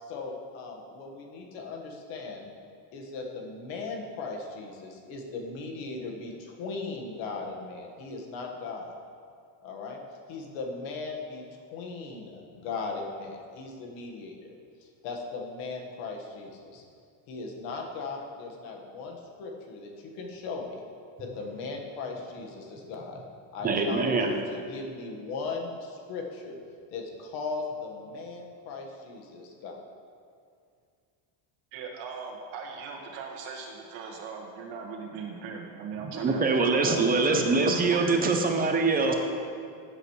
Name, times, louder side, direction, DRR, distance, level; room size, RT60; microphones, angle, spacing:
voice 1, 0.0-2.5 2.9-9.0 9.6-10.0 10.3-14.5 14.8-16.8 17.3-20.8 21.2-23.2 23.5-26.6 26.9-29.8, left 4 dB, 70° left, 1 dB, 1.7 m, -38 dB
voice 2, 23.6-24.3 36.1-39.1, right 3 dB, 20° right, 4 dB, 0.7 m, -24 dB
voice 3, 31.7-38.2 39.0-39.2, right 5 dB, 75° right, 0 dB, 1.8 m, -39 dB
14.5 x 7.7 x 3.2 m, 2.3 s
cardioid pair, 155°, 48 cm